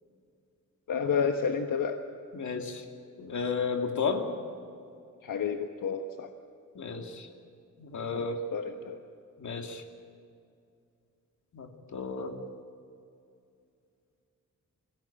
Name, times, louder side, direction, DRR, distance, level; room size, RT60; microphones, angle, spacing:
voice 1, 0.9-2.0 5.2-6.3 8.1-9.0, left 6 dB, 85° left, 5 dB, 1.2 m, -30 dB
voice 2, 2.3-2.8 3.2-4.2 6.7-7.3 7.8-8.4 9.4-9.8 11.5-12.4, left 5 dB, 65° left, 3 dB, 2.6 m, -33 dB
25.5 x 17.0 x 8.8 m, 2.4 s
wide cardioid pair, 175°, 32 cm